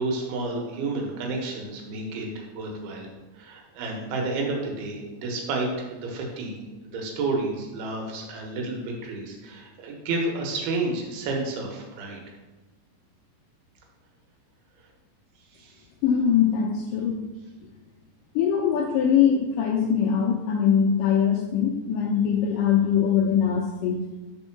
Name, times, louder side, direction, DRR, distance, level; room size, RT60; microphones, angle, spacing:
voice 1, 0.0-3.1 3.3-6.6 6.8-12.2 15.5-15.8, right 3 dB, 80° right, 1 dB, 3.0 m, -30 dB
voice 2, 16.0-17.2 18.4-24.0, left 8 dB, 85° left, 0 dB, 1.9 m, -22 dB
5.3 x 4.5 x 5.7 m, 1.2 s
omnidirectional pair, 4.5 m